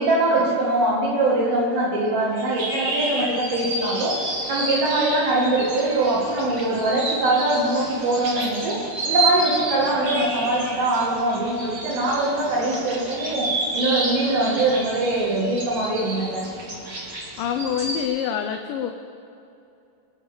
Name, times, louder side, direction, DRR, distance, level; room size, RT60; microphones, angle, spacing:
voice 1, 0.0-4.2 4.5-8.8 9.0-13.5 13.7-16.5, right 2 dB, 70° right, -5 dB, 3.7 m, -22 dB
sound 1, 2.3-18.0, right 2 dB, 45° right, 3.2 m, -30 dB
voice 2, 17.4-18.9, left 9 dB, 75° left, 4 dB, 2.2 m, -26 dB
24.0 x 8.1 x 7.1 m, 2.7 s
omnidirectional pair, 4.5 m